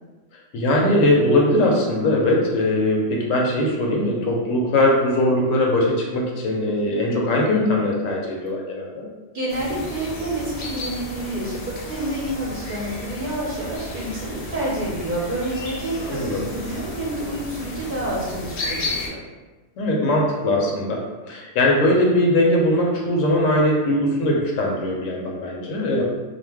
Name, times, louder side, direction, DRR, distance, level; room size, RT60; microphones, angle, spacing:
voice 1, 0.5-9.1 16.0-16.4 19.8-21.0 21.3-26.0, left 1 dB, 90° left, -1 dB, 1.0 m, -20 dB
voice 2, 9.3-19.2, right 1 dB, 50° right, -5 dB, 0.7 m, -28 dB
sound 1, 9.5-19.1, left 2 dB, 65° left, 0.8 m, -33 dB
2.5 x 2.0 x 3.3 m, 1.2 s
omnidirectional pair, 1.3 m